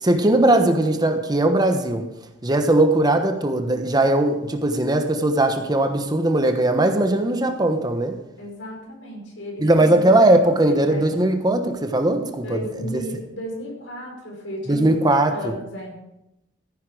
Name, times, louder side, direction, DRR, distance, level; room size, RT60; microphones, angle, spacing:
voice 1, 0.0-2.1 2.4-8.2 9.6-12.6 12.9-13.0 14.7-15.5, right 1 dB, 20° right, 1.1 m, -19 dB
voice 2, 8.4-11.1 12.4-14.9 15.3-16.0, equal, 90° left, 5.2 m, -35 dB
14.5 x 9.8 x 5.0 m
head